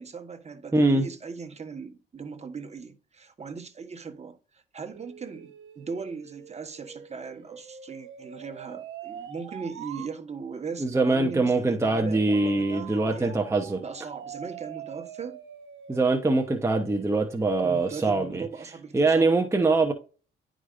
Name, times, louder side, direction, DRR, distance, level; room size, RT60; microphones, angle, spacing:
voice 1, 0.0-13.4 13.8-15.4 17.6-19.3, right 5 dB, 35° right, 1.3 m, -39 dB
voice 2, 0.7-1.1 10.8-13.8 15.9-18.5 18.9-19.9, right 3 dB, 15° right, 0.9 m, -23 dB
sound 1, 4.9-10.1 12.3-18.2, right 9 dB, 75° right, 1.1 m, -44 dB
11.0 x 5.0 x 2.6 m
cardioid pair, 90°, 20 cm